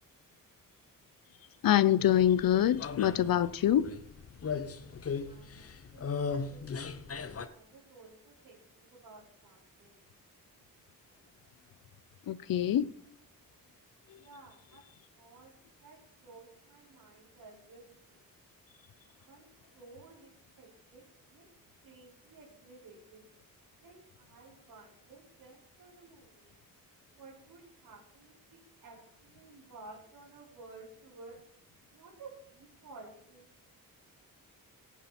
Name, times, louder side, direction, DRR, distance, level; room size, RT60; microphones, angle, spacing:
voice 1, 1.6-3.9 12.3-12.9, left 11 dB, 75° left, 0.7 m, -25 dB
sound 1, 2.0-7.5, left 5 dB, 40° left, 0.9 m, -38 dB
voice 2, 5.2-10.0 14.1-14.8 15.1-15.5 15.8-18.3 19.3-19.5 19.7-20.3 20.6-21.0 21.3-21.5 21.8-23.3 23.8-26.5 27.2-31.4 31.9-33.7, right 3 dB, 85° right, 5.3 m, -54 dB
17.0 x 9.3 x 4.4 m
wide cardioid pair, 130°, 35 cm